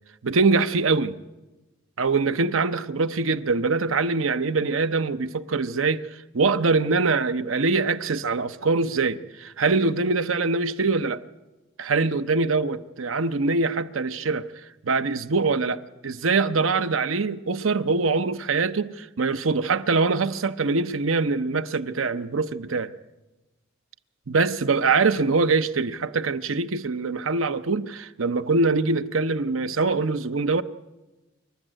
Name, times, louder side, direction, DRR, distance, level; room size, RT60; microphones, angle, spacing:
voice 1, 0.2-1.1 2.0-11.2 11.8-14.5 14.9-22.9 24.3-30.6, right 4 dB, 75° right, 0.8 m, -23 dB
26.5 x 12.0 x 9.0 m
head